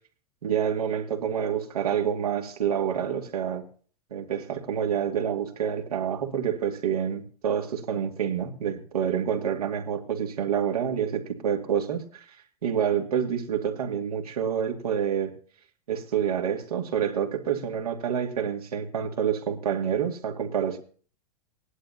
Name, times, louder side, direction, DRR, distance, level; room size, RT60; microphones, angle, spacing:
voice 1, 0.4-3.6 4.1-12.3 12.6-15.3 15.9-20.8, right 8 dB, 70° right, 2 dB, 2.4 m, -28 dB
18.5 x 11.0 x 2.8 m, 0.43 s
figure-of-eight pair, 95°, 20 cm